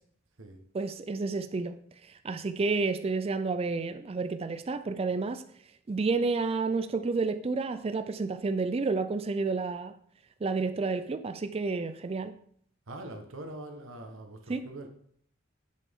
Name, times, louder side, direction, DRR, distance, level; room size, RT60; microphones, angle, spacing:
voice 1, 0.7-1.8 2.0-5.4 5.9-9.9 10.4-12.3 14.5-14.7, right 4 dB, 30° right, 0.4 m, -30 dB
voice 2, 12.9-14.9, right 1 dB, 85° right, 1.3 m, -43 dB
7.7 x 6.6 x 3.6 m
head